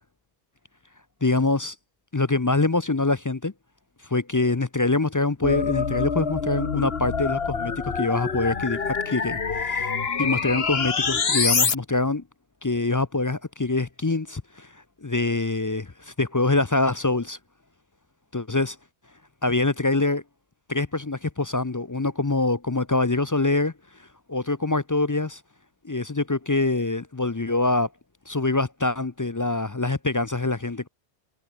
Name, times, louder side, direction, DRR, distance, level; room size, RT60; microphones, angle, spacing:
voice 1, 1.2-1.7 2.1-3.5 4.1-9.9 10.2-12.2 12.6-14.7 15.0-17.4 18.3-18.8 19.4-20.2 20.7-23.7 24.3-25.4 25.8-27.9 28.3-30.9, left 3 dB, 25° left, 0.4 m, -24 dB
sound 1, 5.4-11.7, left 5 dB, 65° left, 1.7 m, -26 dB
omnidirectional pair, 1.1 m